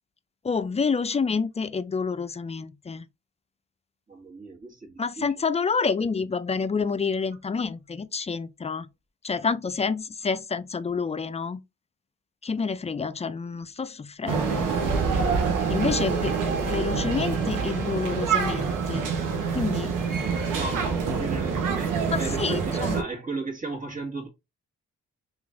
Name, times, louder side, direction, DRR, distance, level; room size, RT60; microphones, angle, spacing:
voice 1, 0.4-3.0 5.0-8.9 9.2-11.6 12.4-14.7 15.7-16.4 16.6-19.1 19.5-20.0 22.1-23.0, left 5 dB, 20° left, 0.4 m, -28 dB
voice 2, 4.1-5.4 20.5-24.3, right 2 dB, 25° right, 1.7 m, -36 dB
sound 1, 14.3-23.0, right 5 dB, 75° right, 0.9 m, -26 dB
3.0 x 2.5 x 3.4 m
supercardioid pair, 45°, 32 cm